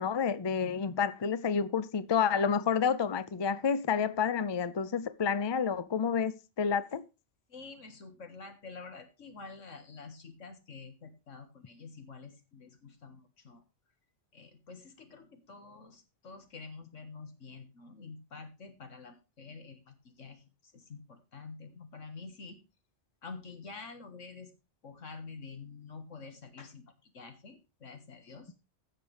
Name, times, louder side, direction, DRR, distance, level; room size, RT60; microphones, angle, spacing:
voice 1, 0.0-7.0, left 6 dB, 45° left, 0.3 m, -29 dB
voice 2, 7.5-13.6 14.3-22.6 23.2-24.5 24.8-28.5, left 4 dB, 85° left, 1.9 m, -48 dB
16.0 x 6.7 x 3.4 m
omnidirectional pair, 1.3 m